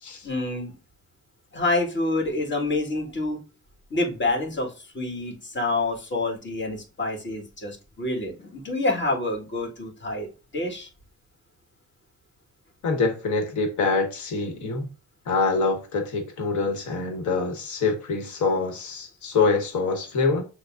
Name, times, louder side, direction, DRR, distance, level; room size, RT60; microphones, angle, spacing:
voice 1, 0.2-0.7 1.5-3.4 3.9-10.3 10.5-10.9, left 2 dB, 40° left, 1.7 m, -27 dB
voice 2, 12.8-14.9 15.3-20.4, left 4 dB, 75° left, 1.2 m, -25 dB
6.5 x 2.2 x 2.4 m
cardioid pair, 90°, 30 cm